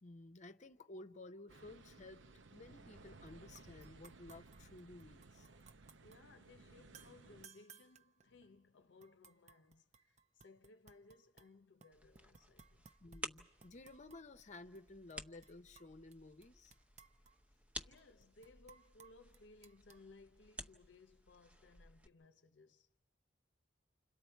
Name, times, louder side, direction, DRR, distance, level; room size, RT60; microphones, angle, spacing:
voice 1, 0.0-2.2 2.5-5.5 13.0-16.7, left 2 dB, 40° left, 0.8 m, -55 dB
sound 1, 1.5-7.5, right 3 dB, 85° right, 0.8 m, -59 dB
sound 2, 3.3-3.4 3.6-6.2 6.9-8.6 9.0-11.5 11.8-14.5 14.8-14.9 15.1-16.1 16.4-20.0, right 6 dB, 40° right, 0.7 m, -63 dB
voice 2, 6.0-12.9 17.8-22.9, left 3 dB, 70° left, 0.7 m, -63 dB
sound 3, 11.9-22.1, equal, 10° right, 0.9 m, -54 dB
30.0 x 27.0 x 4.5 m
head